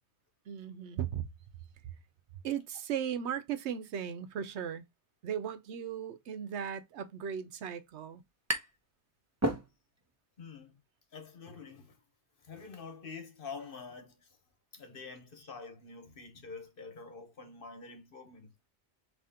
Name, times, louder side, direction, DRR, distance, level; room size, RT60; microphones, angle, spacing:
voice 1, 0.5-1.2 2.4-4.8 5.2-8.2, right 8 dB, 85° right, 1.0 m, -37 dB
sound 1, 7.8-8.9 9.2-10.1, right 1 dB, 15° right, 0.7 m, -34 dB
voice 2, 10.4-10.8 11.1-12.0 12.4-14.3 14.7-18.5, left 4 dB, 55° left, 1.2 m, -47 dB
4.2 x 2.8 x 3.6 m
omnidirectional pair, 1.1 m